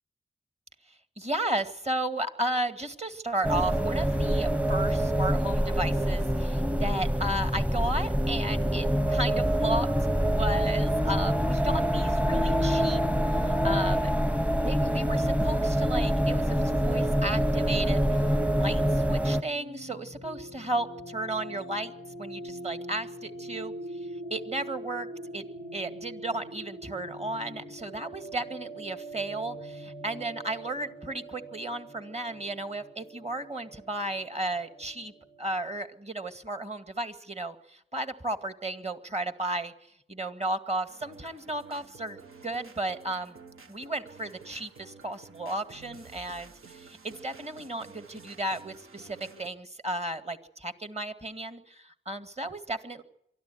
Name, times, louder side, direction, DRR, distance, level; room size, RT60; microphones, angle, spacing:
voice 1, 0.9-9.9 10.3-14.1 14.6-21.9 22.2-25.1 25.3-25.4 25.7-35.1 35.4-42.2 42.4-43.4 43.7-53.0, right 1 dB, 30° right, 8 dB, 2.2 m, -34 dB
sound 1, 3.4-19.4, equal, 5° right, 0.9 m, -25 dB
sound 2, 16.2-35.7, right 1 dB, 70° right, 6.3 m, -43 dB
sound 3, 40.9-49.5, right 4 dB, 90° right, 1.6 m, -51 dB
23.5 x 13.5 x 9.4 m, 0.76 s
cardioid pair, 50°, 21 cm